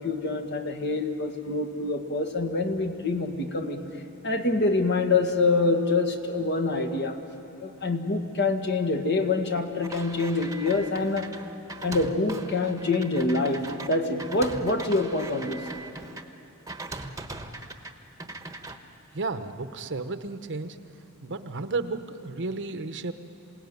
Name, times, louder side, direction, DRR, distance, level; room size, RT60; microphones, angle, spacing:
voice 1, 0.0-3.8 4.2-7.2 7.6-11.3 11.8-15.6, left 3 dB, 55° left, 5 dB, 1.8 m, -26 dB
sound 1, 9.8-16.2 16.7-17.9 18.2-18.8, right 2 dB, 15° right, 1.2 m, -40 dB
voice 2, 19.1-20.8 21.2-23.1, right 3 dB, 55° right, 9 dB, 1.0 m, -32 dB
27.5 x 18.0 x 9.5 m, 2.9 s
head